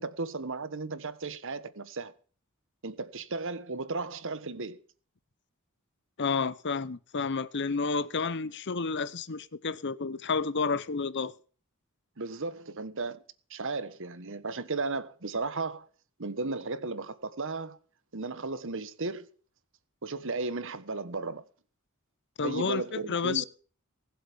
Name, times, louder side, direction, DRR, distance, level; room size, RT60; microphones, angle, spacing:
voice 1, 0.0-2.1 2.8-4.8 12.2-13.2 13.5-15.9 16.2-17.8 18.1-19.3 20.0-21.4 22.4-23.4, right 3 dB, 60° right, 1.4 m, -35 dB
voice 2, 6.2-11.3 22.4-23.4, left 4 dB, 55° left, 0.9 m, -30 dB
20.0 x 7.7 x 7.3 m
head